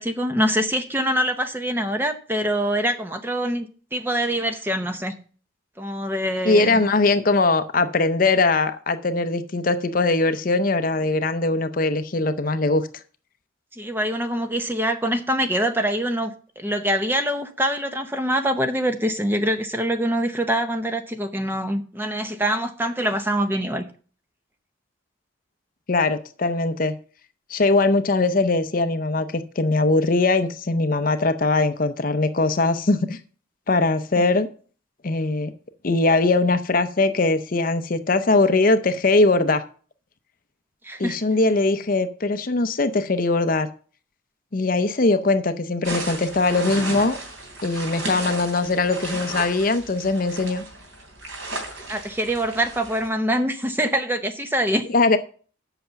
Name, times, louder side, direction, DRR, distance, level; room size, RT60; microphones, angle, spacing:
voice 1, 0.0-5.2 5.8-6.8 13.7-23.9 34.2-34.3 40.8-41.2 51.9-54.9, right 1 dB, 10° right, 0.7 m, -24 dB
voice 2, 6.4-12.8 25.9-26.9 27.5-33.2 33.7-34.5 35.0-35.5 35.8-39.6 41.0-43.7 44.5-47.2 47.6-50.6 54.9-55.2, left 3 dB, 45° left, 0.6 m, -21 dB
sound 1, 45.8-53.1, right 2 dB, 85° right, 3.1 m, -34 dB
8.0 x 5.7 x 6.8 m
head